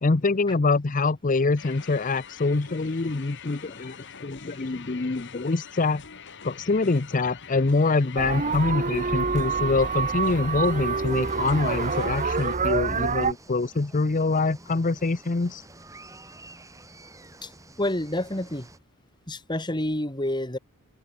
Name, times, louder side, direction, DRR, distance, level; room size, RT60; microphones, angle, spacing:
voice 1, 0.0-6.0 6.4-15.6, left 3 dB, 35° left, 0.7 m, -25 dB
sound 1, 1.6-12.6, left 7 dB, 55° left, 2.8 m, -45 dB
sound 2, 8.2-13.3, right 5 dB, 35° right, 1.0 m, -27 dB
sound 3, 11.1-18.8, right 2 dB, 15° right, 4.3 m, -50 dB
voice 2, 17.8-18.7 19.3-20.6, left 1 dB, 20° left, 3.6 m, -28 dB
open air
head